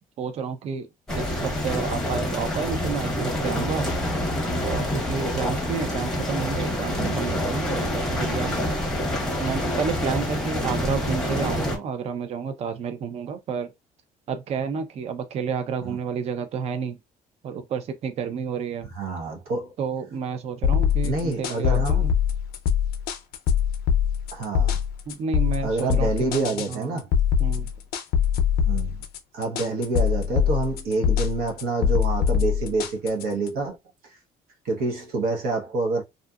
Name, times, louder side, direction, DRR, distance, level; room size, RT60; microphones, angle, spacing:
voice 1, 0.2-0.9 1.2-3.9 4.6-8.7 9.4-13.7 14.3-17.0 17.4-18.9 19.8-22.1 25.1-27.0 27.4-27.7, right 6 dB, 40° right, 0.5 m, -30 dB
sound 1, 1.1-11.8, left 1 dB, 5° left, 0.8 m, -27 dB
voice 2, 18.9-19.7 21.0-22.1 24.3-24.8 25.6-27.1 28.6-29.0 29.3-33.8 34.0-34.2 34.6-36.0, right 3 dB, 70° right, 0.9 m, -27 dB
sound 2, 20.6-33.5, left 8 dB, 75° left, 0.5 m, -23 dB
2.6 x 2.4 x 2.3 m
cardioid pair, 140°, 16 cm